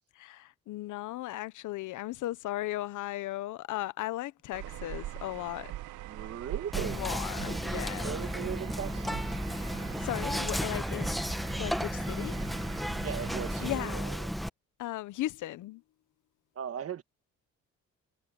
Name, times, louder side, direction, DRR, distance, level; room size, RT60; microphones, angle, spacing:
voice 1, 0.2-5.7 6.8-8.2 9.5-11.2 11.6-12.4 13.6-14.2 14.8-15.8, left 15 dB, 80° left, 0.8 m, -37 dB
sound 1, 4.5-13.7, right 15 dB, 85° right, 0.8 m, -43 dB
voice 2, 6.1-7.2 7.4-9.4 13.0-14.3 16.5-17.0, right 8 dB, 50° right, 1.5 m, -39 dB
Whispering, 6.7-14.5, equal, ahead, 1.3 m, -33 dB
cardioid pair, 90°, 30 cm